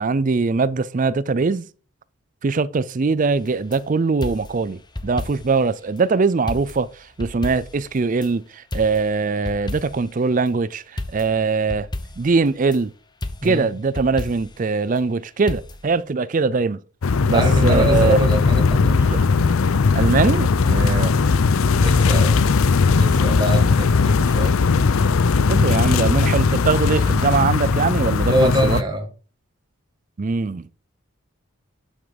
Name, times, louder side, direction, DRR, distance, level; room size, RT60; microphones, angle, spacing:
voice 1, 0.0-1.7 2.4-6.9 7.2-11.9 12.2-12.9 13.4-16.8 17.3-18.2 19.1-19.3 19.9-21.1 25.5-28.8 30.2-30.7, right 4 dB, 35° right, 0.4 m, -21 dB
sound 1, 3.4-3.8 4.2-5.7 6.0-6.1 6.5-8.3 8.7-10.2 11.0-12.8 13.2-14.7 15.5-16.0, left 1 dB, 20° left, 0.9 m, -33 dB
sound 2, 17.0-28.8, left 4 dB, 75° left, 0.5 m, -18 dB
voice 2, 17.3-19.0 20.8-21.1 21.7-24.6 28.2-29.1, equal, 20° right, 1.7 m, -24 dB
11.5 x 6.3 x 4.0 m
head